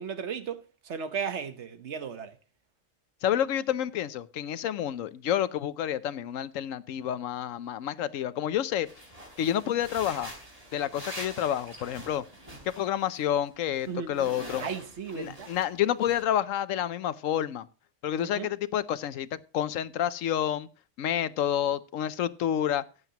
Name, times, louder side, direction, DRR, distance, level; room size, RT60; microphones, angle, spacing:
voice 1, 0.0-2.4 13.9-14.3 14.6-15.5 18.2-18.5, right 6 dB, 65° right, 1.2 m, -35 dB
voice 2, 3.2-8.9 9.4-10.3 10.7-12.2 12.8-14.7 15.2-17.7 18.0-20.7 21.0-22.8, left 10 dB, 90° left, 1.1 m, -29 dB
sound 1, 8.9-13.3 13.5-15.7 16.0-16.2, right 1 dB, 30° right, 3.4 m, -44 dB
15.0 x 9.5 x 2.9 m
omnidirectional pair, 1.3 m